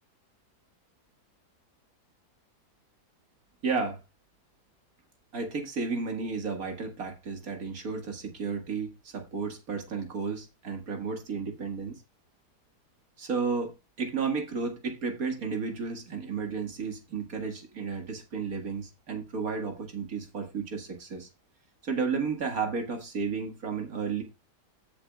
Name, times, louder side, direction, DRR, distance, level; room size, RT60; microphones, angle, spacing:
voice 1, 3.6-4.0 5.3-11.9 13.2-21.3 21.8-24.2, right 5 dB, 55° right, 2.3 m, -33 dB
14.0 x 7.2 x 2.4 m
omnidirectional pair, 1.8 m